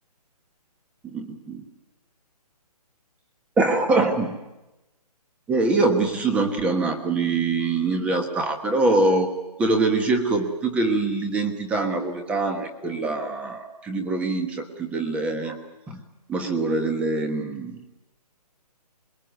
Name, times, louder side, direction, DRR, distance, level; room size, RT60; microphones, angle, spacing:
voice 1, 1.0-1.6 3.6-4.4 5.5-9.3 9.6-15.6 15.9-16.0 16.3-17.8, right 3 dB, 5° right, 6 dB, 1.4 m, -24 dB
26.0 x 21.5 x 9.3 m, 1.0 s
hypercardioid pair, 165°, 20 cm